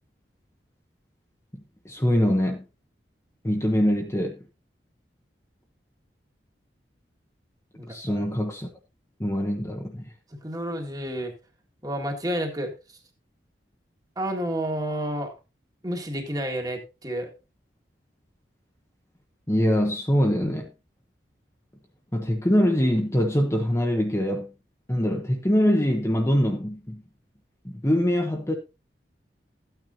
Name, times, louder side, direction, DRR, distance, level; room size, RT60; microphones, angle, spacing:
voice 1, 1.8-2.6 3.4-4.4 7.9-8.7 9.2-10.0 19.5-20.7 22.1-24.5 24.9-27.0 27.6-28.6, equal, 15° left, 1.1 m, -23 dB
voice 2, 7.7-8.2 10.3-11.3 11.8-12.7 14.2-15.3 15.8-17.3, equal, 20° right, 1.9 m, -30 dB
14.0 x 9.2 x 2.7 m
head